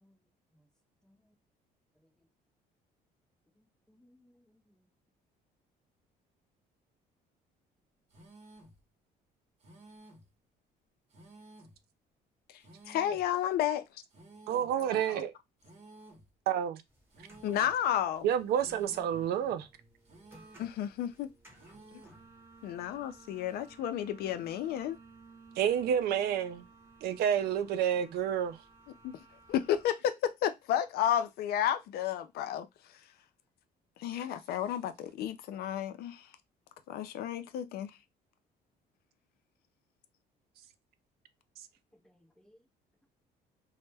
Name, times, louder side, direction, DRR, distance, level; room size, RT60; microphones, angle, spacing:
voice 1, 3.9-4.6 14.8-15.2 42.0-42.6, equal, 5° left, 0.5 m, -55 dB
sound 1, 8.1-8.8 9.6-10.3 11.1-11.8 12.6-13.3 14.1-14.8 15.6-16.3 17.1-17.8 18.6-19.3 20.1-20.8 21.6-22.3, right 2 dB, 40° right, 0.8 m, -55 dB
voice 2, 12.9-13.8 17.4-18.3 20.6-21.3 22.6-25.0 29.0-29.2 29.5-32.7 34.0-36.3 36.9-37.9, left 10 dB, 65° left, 0.4 m, -32 dB
voice 3, 14.5-15.3 16.5-16.8 18.2-19.7 25.6-26.7 27.0-28.6, right 9 dB, 70° right, 0.4 m, -29 dB
sound 2, 16.9-29.9, right 3 dB, 15° right, 1.0 m, -57 dB
2.1 x 2.0 x 3.3 m
cardioid pair, 110°, 17 cm